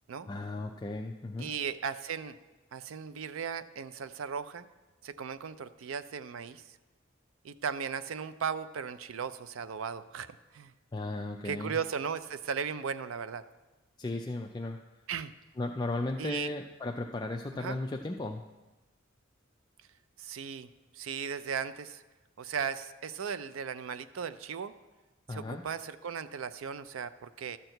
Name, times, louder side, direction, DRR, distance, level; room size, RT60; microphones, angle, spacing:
voice 1, 0.3-1.5 10.9-11.8 14.0-14.8 15.6-18.4 25.3-25.6, left 2 dB, 20° left, 2 dB, 0.4 m, -35 dB
voice 2, 1.4-2.4 2.7-4.7 5.0-6.8 7.4-10.7 11.4-13.4 15.1-15.3 16.2-16.5 17.5-17.8 20.2-20.7 20.9-22.0 22.4-24.7 25.3-27.6, right 6 dB, 85° right, 14 dB, 0.4 m, -37 dB
12.0 x 4.5 x 7.8 m, 1.2 s
head